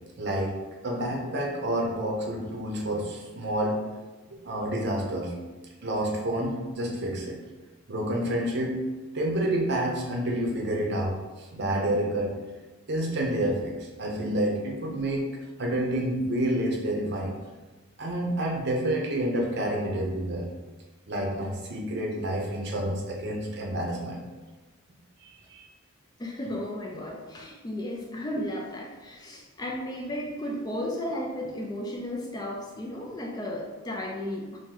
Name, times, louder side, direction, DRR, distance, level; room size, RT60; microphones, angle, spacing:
voice 1, 0.2-0.6 0.8-3.8 4.3-5.3 5.8-7.4 7.9-8.8 9.1-12.3 12.9-15.3 15.6-17.3 18.0-20.5 21.1-24.2 25.2-25.7, right 1 dB, 50° right, -1 dB, 0.6 m, -29 dB
voice 2, 26.2-34.6, left 1 dB, 20° left, -1 dB, 0.3 m, -34 dB
2.9 x 2.6 x 3.8 m, 1.2 s
head